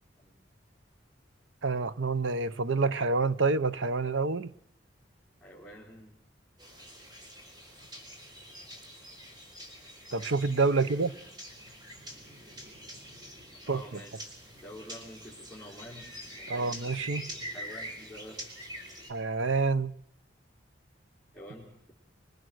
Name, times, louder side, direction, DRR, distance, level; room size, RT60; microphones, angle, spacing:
voice 1, 1.6-4.5 10.1-11.1 13.7-13.8 16.5-17.3 19.1-19.9, right 3 dB, 85° right, 0.9 m, -27 dB
voice 2, 5.4-6.2 10.7-11.3 13.6-16.9 17.5-18.4 21.3-21.9, equal, ahead, 4.9 m, -48 dB
sound 1, 6.6-19.1, equal, 20° right, 4.6 m, -45 dB
25.0 x 24.0 x 6.3 m
head